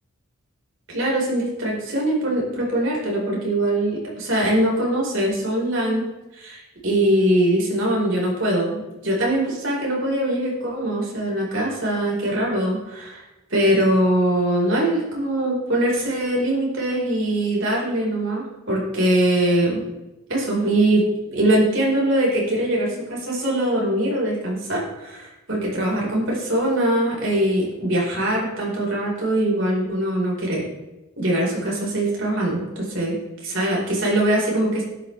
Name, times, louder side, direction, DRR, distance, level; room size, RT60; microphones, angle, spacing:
voice 1, 0.9-6.1 6.3-13.2 13.5-19.8 20.3-21.1 21.3-30.6 31.2-33.1 33.5-34.8, right 1 dB, 65° right, -3 dB, 4.7 m, -22 dB
12.0 x 11.0 x 3.4 m, 1.0 s
head